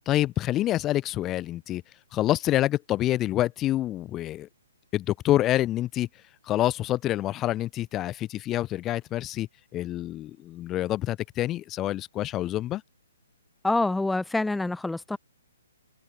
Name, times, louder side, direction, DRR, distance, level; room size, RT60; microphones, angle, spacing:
voice 1, 0.1-1.8 2.1-4.5 4.9-6.1 6.4-12.8, left 14 dB, 20° left, 2.1 m, -27 dB
voice 2, 13.6-15.2, left 2 dB, 5° left, 0.7 m, -26 dB
figure-of-eight pair, 125°, 0 cm